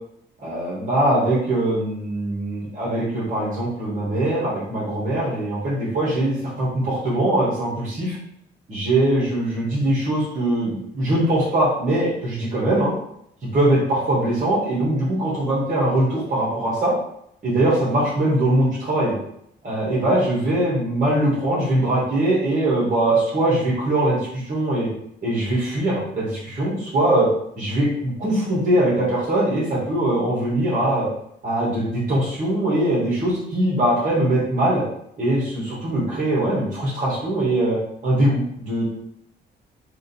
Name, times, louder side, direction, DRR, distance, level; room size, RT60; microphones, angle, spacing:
voice 1, 0.4-8.2 8.7-12.9 13.5-16.9 17.4-19.1 19.6-24.9 25.2-27.3 27.6-31.1 31.4-34.8 35.2-38.8, right 1 dB, 40° right, -7 dB, 1.4 m, -21 dB
3.6 x 2.6 x 4.1 m, 0.74 s
cardioid pair, 115°, 20 cm